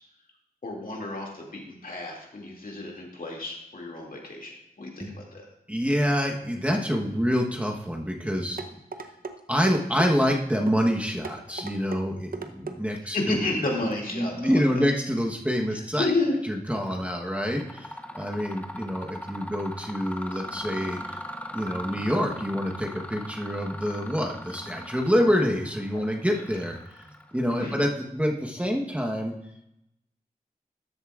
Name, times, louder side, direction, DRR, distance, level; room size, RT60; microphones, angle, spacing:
voice 1, 0.6-5.4 13.0-14.6 15.7-16.3 25.9-26.0 27.6-27.8, left 2 dB, 65° left, -1 dB, 2.3 m, -31 dB
voice 2, 5.7-8.6 9.5-13.4 14.1-16.1 16.4-21.2 21.5-26.8 27.3-29.3, equal, 10° right, 0 dB, 1.0 m, -26 dB
sound 1, 8.6-9.4 9.7-10.1 10.7-10.8 11.2-12.0 12.3-12.8 13.3-13.5 13.9-14.0, right 4 dB, 70° right, 0.7 m, -36 dB
Mechanisms, 16.7-17.1 17.4-28.0, left 1 dB, 10° left, 0.6 m, -40 dB
13.0 x 7.9 x 2.4 m, 0.83 s
wide cardioid pair, 85°, 16 cm